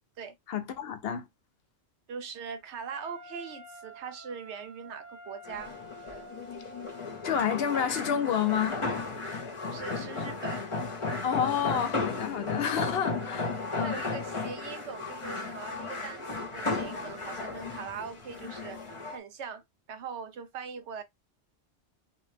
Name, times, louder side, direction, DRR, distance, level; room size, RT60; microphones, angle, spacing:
voice 1, 0.5-1.3 7.2-8.8 11.2-14.0, left 8 dB, 65° left, 0.8 m, -29 dB
voice 2, 2.1-5.7 9.7-10.7 13.8-18.8 19.1-19.6 19.9-21.0, right 6 dB, 75° right, 1.0 m, -41 dB
Wind instrument woodwind instrument, 2.9-8.1, left 1 dB, 50° right, 0.8 m, -49 dB
sound 1, 5.4-19.2, left 3 dB, 30° left, 0.7 m, -35 dB
2.6 x 2.1 x 3.2 m
omnidirectional pair, 1.2 m